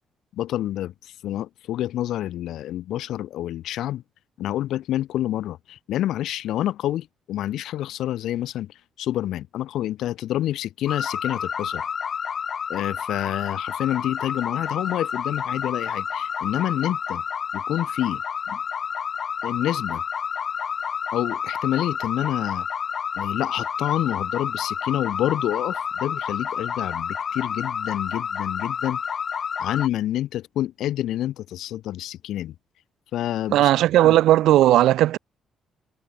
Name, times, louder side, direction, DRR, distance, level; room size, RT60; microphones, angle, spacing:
voice 1, 0.3-4.0 4.4-11.8 12.7-17.2 17.5-18.2 18.5-18.6 19.4-20.0 21.1-22.7 23.2-29.0 29.6-32.5 33.1-33.7 34.0-34.1, left 13 dB, 80° left, 1.5 m, -28 dB
sound 1, 10.9-29.9, left 7 dB, 50° left, 1.8 m, -29 dB
voice 2, 33.5-35.2, right 14 dB, 85° right, 0.4 m, -16 dB
cardioid pair, 90°, 0 cm